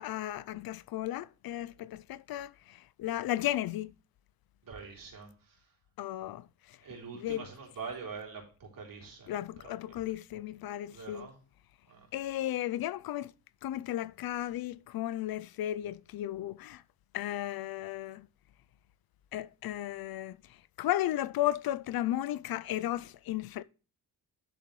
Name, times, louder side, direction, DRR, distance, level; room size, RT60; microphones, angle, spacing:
voice 1, 0.0-3.9 6.0-6.8 7.1-7.5 9.3-11.3 12.1-13.3 13.6-16.8 17.1-18.3 19.3-20.4 20.8-23.6, left 13 dB, 85° left, 0.5 m, -34 dB
voice 2, 4.6-5.6 6.8-9.3 9.6-9.7 10.9-11.4 11.9-12.1, right 5 dB, 70° right, 3.6 m, -44 dB
11.0 x 6.9 x 3.2 m
wide cardioid pair, 115°, 35 cm